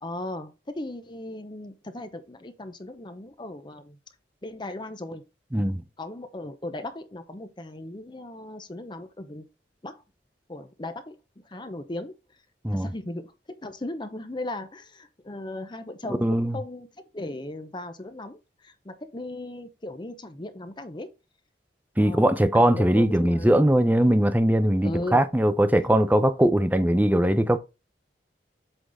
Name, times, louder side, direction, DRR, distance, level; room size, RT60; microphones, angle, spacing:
voice 1, 0.0-4.0 4.4-5.2 6.0-9.5 9.8-10.0 10.5-11.2 11.4-12.1 12.7-16.9 17.1-21.1 22.0-23.7 24.8-25.2, left 1 dB, 25° left, 0.7 m, -37 dB
voice 2, 16.2-16.5 22.0-27.6, right 1 dB, 10° right, 0.6 m, -20 dB
8.0 x 3.9 x 4.0 m
head